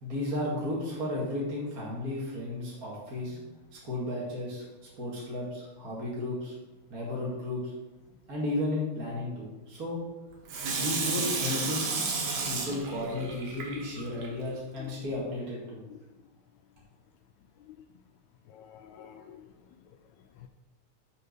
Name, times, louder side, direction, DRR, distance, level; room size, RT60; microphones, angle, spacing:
voice 1, 0.0-3.4 3.8-4.6 5.0-6.5 6.9-7.7 8.3-10.0 10.8-11.9 12.4-15.8, left 1 dB, 30° right, -5 dB, 2.1 m, -34 dB
Water tap faucet / Sink (filling or washing), 10.5-14.3 14.8-14.9, right 4 dB, 75° right, 2.8 m, -32 dB
voice 2, 18.5-19.4 20.4-20.5, left 10 dB, 80° left, 6 dB, 1.7 m, -48 dB
6.6 x 5.6 x 6.6 m, 1.1 s
omnidirectional pair, 3.6 m